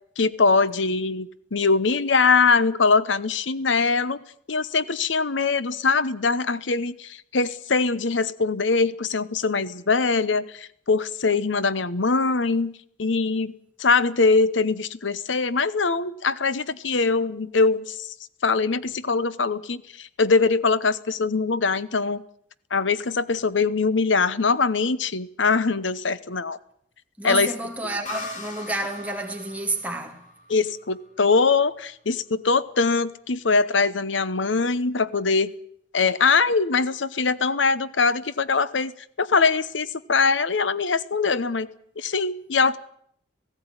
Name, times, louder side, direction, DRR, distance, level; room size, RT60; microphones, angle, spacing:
voice 1, 0.2-4.2 4.5-12.7 13.0-13.5 13.8-18.1 18.4-22.2 22.7-26.6 27.2-27.5 30.5-35.5 35.9-38.9 39.2-41.7 42.0-42.8, left 4 dB, 80° left, 0.9 m, -22 dB
voice 2, 27.2-30.2, right 2 dB, 10° right, 2.5 m, -30 dB
sound 1, 28.1-31.6, left 2 dB, 45° left, 3.6 m, -40 dB
17.0 x 17.0 x 9.6 m
head